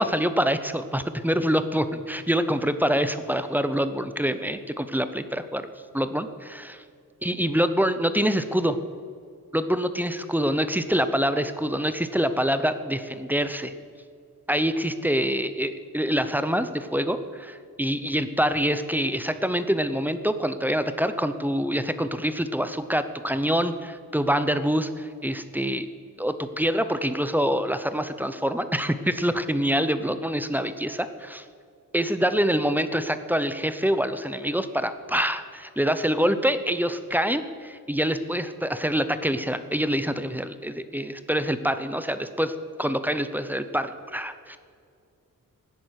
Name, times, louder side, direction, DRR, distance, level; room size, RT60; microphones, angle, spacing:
voice 1, 0.0-5.7 5.9-6.8 7.2-8.8 9.5-13.7 14.5-25.9 26.2-31.4 31.9-42.5 42.8-44.6, equal, 5° right, 11 dB, 0.7 m, -25 dB
17.5 x 10.0 x 6.4 m, 2.3 s
wide cardioid pair, 145°, 35 cm